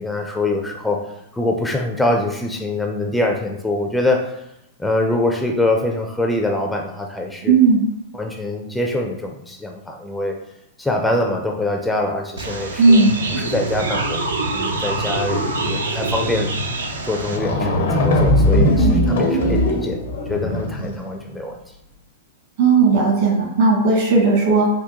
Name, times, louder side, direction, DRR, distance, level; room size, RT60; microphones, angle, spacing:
voice 1, 0.0-4.3 4.8-7.5 8.1-10.4 10.8-13.0 13.4-16.5 17.0-20.0 20.3-21.6, left 2 dB, 5° left, 2 dB, 0.4 m, -24 dB
voice 2, 7.4-7.8 12.8-13.1 22.6-24.7, right 4 dB, 60° right, -1 dB, 1.4 m, -15 dB
sound 1, 12.4-17.4, right 2 dB, 85° right, 0.4 m, -25 dB
sound 2, 16.9-17.0 17.2-21.0, left 1 dB, 70° left, 0.6 m, -19 dB
3.6 x 2.1 x 2.9 m, 0.80 s
hypercardioid pair, 105°, 0 cm